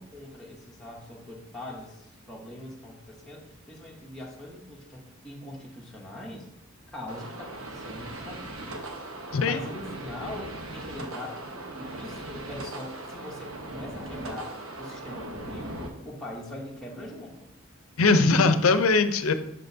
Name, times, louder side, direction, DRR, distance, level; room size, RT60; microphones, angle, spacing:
voice 1, 0.0-6.5 6.9-8.9 9.2-17.3, left 1 dB, 5° left, -4 dB, 0.8 m, -42 dB
sound 1, 7.1-15.9, right 2 dB, 85° right, 1.0 m, -39 dB
voice 2, 9.3-9.6 18.0-19.3, left 3 dB, 90° left, 10 dB, 0.6 m, -21 dB
7.6 x 6.4 x 2.7 m, 0.81 s
head